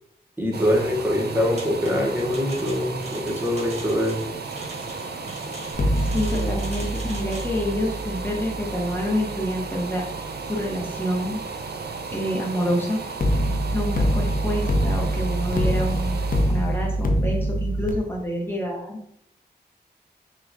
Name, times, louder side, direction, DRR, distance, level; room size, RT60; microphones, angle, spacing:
voice 1, 0.4-4.2, left 1 dB, 10° right, -2 dB, 1.2 m, -23 dB
sound 1, 0.5-18.2 18.7-18.8, right 4 dB, 70° right, 0.5 m, -35 dB
sound 2, 1.6-7.6, right 2 dB, 40° right, 1.3 m, -42 dB
sound 3, 5.7-10.8 13.2-17.9, equal, 55° left, 0.7 m, -25 dB
voice 2, 6.1-10.0 10.4-11.4 12.1-13.0 13.7-16.2 16.5-19.0, equal, 10° left, -2 dB, 1.3 m, -27 dB
5.5 x 2.5 x 2.8 m, 0.71 s
cardioid pair, 60°, 17 cm